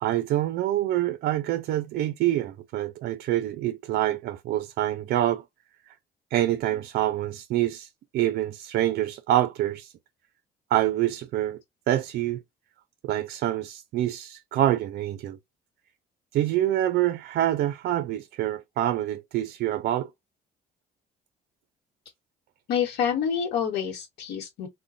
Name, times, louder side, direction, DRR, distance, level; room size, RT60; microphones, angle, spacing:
voice 1, 0.0-5.4 6.3-7.9 8.1-9.9 10.7-11.6 11.9-12.4 13.0-15.4 16.3-20.1, right 13 dB, 65° right, 0.4 m, -26 dB
voice 2, 22.7-24.7, left 8 dB, 80° left, 0.9 m, -27 dB
4.7 x 2.1 x 2.5 m
cardioid pair, 110°, 17 cm